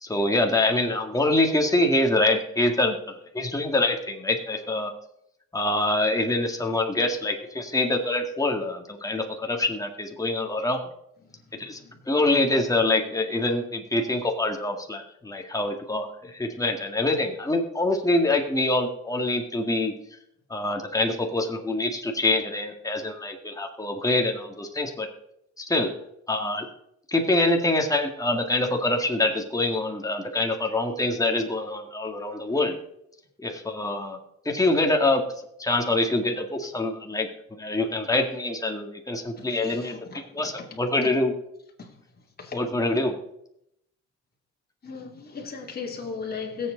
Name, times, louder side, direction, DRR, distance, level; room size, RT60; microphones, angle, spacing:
voice 1, 0.0-4.9 5.5-10.8 11.6-11.8 12.1-19.9 20.5-25.1 25.6-25.9 26.3-26.7 27.1-32.8 33.4-34.2 34.5-35.2 35.6-40.0 40.3-41.3 42.5-43.2, left 2 dB, 10° left, 2.0 m, -25 dB
voice 2, 11.2-12.0 39.4-41.1 41.8-42.0 42.4-42.6 44.8-46.7, left 5 dB, 30° left, 2.7 m, -38 dB
21.5 x 7.7 x 3.9 m
cardioid pair, 90°, 30 cm